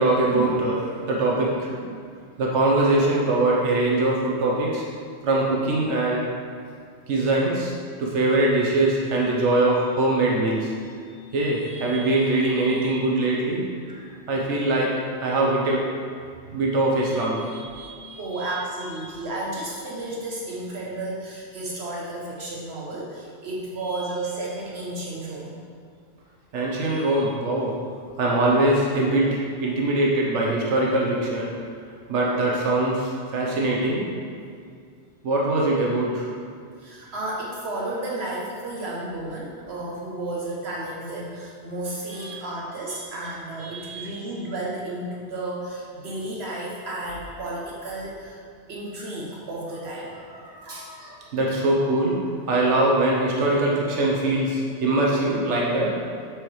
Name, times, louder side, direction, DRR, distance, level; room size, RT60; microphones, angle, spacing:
voice 1, 0.0-2.0 2.4-4.8 5.2-6.2 7.1-7.7 8.0-10.7 11.3-14.9 15.2-15.8 16.5-18.5 26.5-27.7 28.2-31.5 32.1-34.1 35.2-36.3 42.2-42.3 43.6-44.1 50.3-52.2 52.5-56.0, right 2 dB, 90° right, -3 dB, 1.2 m, -23 dB
voice 2, 18.2-25.6 36.8-48.4 48.7-50.2 50.6-50.9, right 2 dB, 65° right, -4 dB, 1.1 m, -32 dB
7.8 x 4.7 x 3.1 m, 2.2 s
omnidirectional pair, 1.2 m